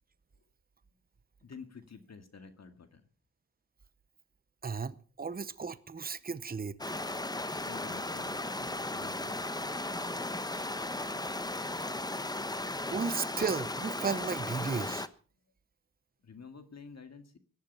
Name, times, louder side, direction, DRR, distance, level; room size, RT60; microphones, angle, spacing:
voice 1, 1.4-3.1 7.3-9.6 16.2-17.4, left 5 dB, 50° left, 2.1 m, -50 dB
voice 2, 4.6-6.8 12.9-15.1, right 5 dB, 25° right, 0.8 m, -34 dB
sound 1, 6.8-15.1, left 2 dB, 10° left, 1.0 m, -36 dB
17.5 x 12.0 x 5.6 m
wide cardioid pair, 90°, 34 cm